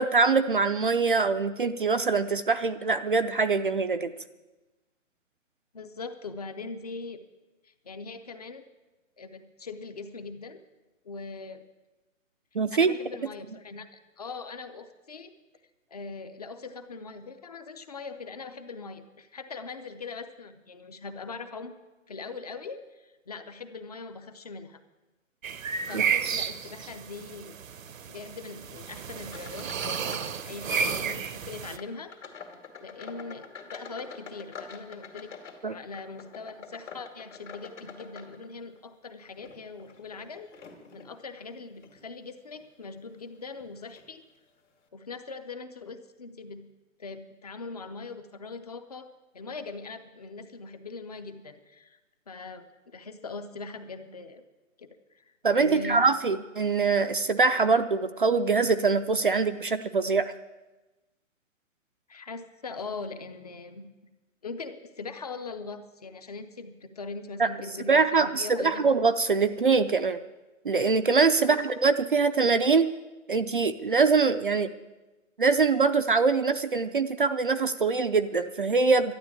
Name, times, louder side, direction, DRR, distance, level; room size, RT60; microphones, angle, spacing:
voice 1, 0.0-4.1 12.5-12.9 25.9-26.0 35.6-35.8 55.4-60.3 67.4-67.5 67.9-70.2 70.6-72.9 73.3-74.7 75.4-79.1, right 4 dB, 40° right, 9 dB, 0.5 m, -23 dB
voice 2, 5.7-7.2 7.6-8.7 9.2-10.6 11.0-11.6 12.7-15.3 15.9-21.8 22.1-24.8 25.9-27.6 28.1-32.4 32.8-35.3 35.6-40.5 40.9-44.2 44.9-46.7 47.0-49.1 49.3-52.0 52.3-54.4 54.8-56.1 62.1-63.9 64.4-68.9 71.4-71.7, left 4 dB, 30° left, 9 dB, 0.7 m, -41 dB
sound 1, 25.4-31.8, right 7 dB, 75° right, 1.0 m, -32 dB
sound 2, 29.2-30.4 30.7-31.2 31.7-38.8 39.3-41.1 41.7-42.0 42.5-42.7 43.5-43.7 44.0-44.1, left 5 dB, 60° left, 2.4 m, -46 dB
12.0 x 10.5 x 8.4 m, 1.1 s
hypercardioid pair, 170°, 40 cm